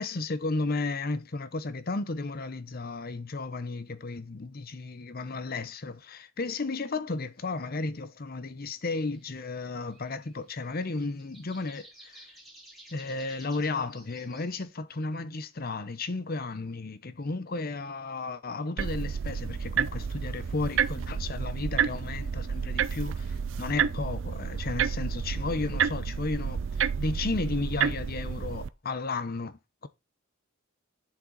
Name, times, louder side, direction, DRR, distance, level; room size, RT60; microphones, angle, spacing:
voice 1, 0.0-12.3 12.9-29.9, left 3 dB, 45° left, 0.8 m, -34 dB
sound 1, 9.1-14.6, right 1 dB, ahead, 2.9 m, -54 dB
sound 2, 18.8-28.7, right 7 dB, 60° right, 0.4 m, -30 dB
7.7 x 7.0 x 3.9 m
head